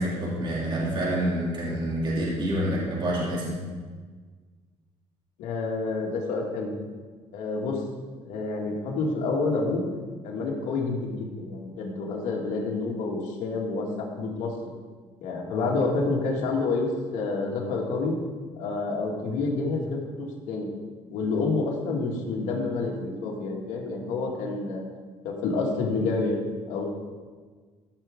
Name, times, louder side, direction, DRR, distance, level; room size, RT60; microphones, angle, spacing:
voice 1, 0.0-3.6, right 1 dB, 40° right, -5 dB, 2.7 m, -27 dB
voice 2, 5.4-6.7 7.3-7.8 8.3-9.8 10.2-14.5 15.2-16.9 17.1-18.1 18.6-20.7 21.1-24.8 25.2-26.4 26.7-26.8, left 3 dB, 85° left, -2 dB, 2.1 m, -28 dB
14.5 x 6.3 x 3.7 m, 1.5 s
cardioid pair, 120°, 12 cm